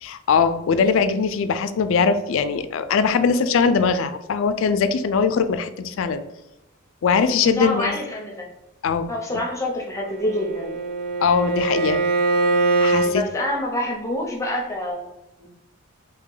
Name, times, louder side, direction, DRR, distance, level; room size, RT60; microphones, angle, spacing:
voice 1, 0.0-6.2 7.0-7.9 8.8-9.1 11.2-12.0 12.8-13.2, left 5 dB, 65° left, 10 dB, 0.3 m, -21 dB
voice 2, 7.6-8.5 9.1-10.8 13.0-15.5, left 1 dB, 15° left, -1 dB, 0.6 m, -27 dB
Bowed string instrument, 10.0-13.1, right 2 dB, 90° right, 0.6 m, -22 dB
2.8 x 2.8 x 3.8 m, 0.91 s
head